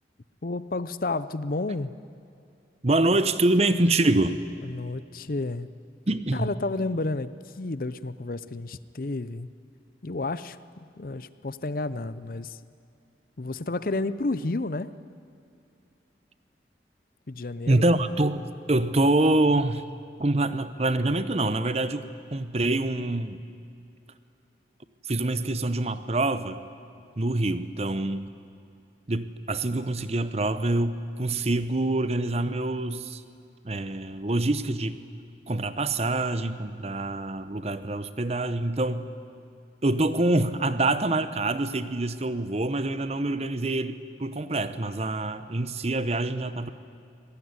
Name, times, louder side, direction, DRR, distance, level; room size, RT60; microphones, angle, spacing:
voice 1, 0.4-1.9 4.6-5.7 6.3-9.5 10.0-10.6 11.0-12.6 13.4-14.9 17.3-17.8, left 2 dB, 55° left, 15 dB, 0.7 m, -31 dB
voice 2, 2.8-4.4 6.1-6.5 17.7-19.8 20.2-23.4 25.0-26.6 27.2-28.3 29.1-33.2 33.6-35.0 35.5-39.1 39.8-46.7, right 2 dB, 35° right, 12 dB, 0.9 m, -25 dB
24.5 x 18.5 x 9.7 m, 2.5 s
head